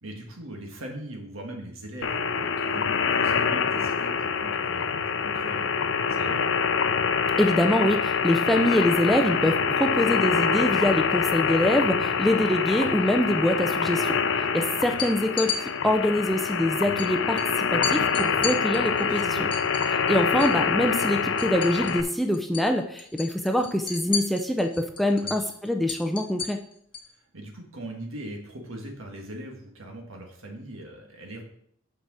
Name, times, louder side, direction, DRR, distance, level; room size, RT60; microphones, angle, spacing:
voice 1, 0.0-5.8 6.1-6.5 19.0-19.6 25.2-25.5 27.1-31.4, right 1 dB, 75° right, 2 dB, 1.8 m, -40 dB
sound 1, 2.0-22.0, left 6 dB, 60° left, 0.5 m, -25 dB
voice 2, 7.4-14.2 14.5-15.6 15.8-19.4 20.1-26.6, left 1 dB, ahead, 3 dB, 0.4 m, -24 dB
sound 2, 14.9-15.6 17.0-17.1 17.4-17.5 17.8-20.6 20.9-22.1 22.3-22.7 23.0-27.1, left 6 dB, 25° left, 1.1 m, -33 dB
6.8 x 4.8 x 6.1 m, 0.67 s
head